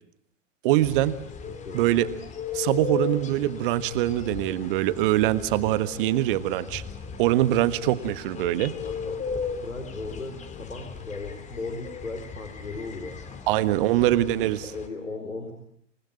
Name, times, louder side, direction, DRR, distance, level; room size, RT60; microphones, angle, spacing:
voice 1, 0.6-1.2 1.7-2.1 2.5-6.8 7.2-8.7 13.5-14.6, right 14 dB, 45° right, 14 dB, 1.5 m, -23 dB
sound 1, 0.8-14.9, left 6 dB, 20° left, 2.6 m, -37 dB
voice 2, 1.6-2.1 8.8-13.2 14.6-15.5, left 3 dB, 80° left, 4 dB, 4.8 m, -37 dB
28.0 x 20.0 x 8.8 m, 0.71 s
figure-of-eight pair, 100°, 38 cm